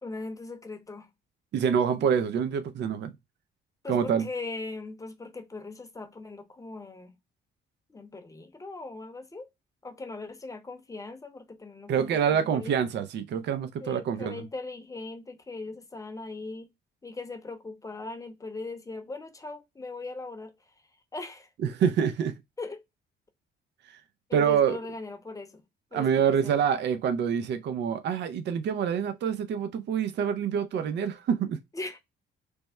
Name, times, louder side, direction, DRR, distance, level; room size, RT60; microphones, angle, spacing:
voice 1, 0.0-1.1 3.8-7.2 7.9-9.5 9.8-12.7 13.8-16.7 17.0-20.5 21.1-21.5 22.6-22.8 24.3-25.6 25.9-26.5 31.7-32.0, left 3 dB, 15° left, 0.7 m, -39 dB
voice 2, 1.5-3.1 3.9-4.3 11.9-14.4 21.6-22.3 23.9-24.0 24.3-24.8 25.9-31.6, right 7 dB, 60° right, 0.5 m, -26 dB
3.4 x 2.1 x 4.2 m
cardioid pair, 90°, 20 cm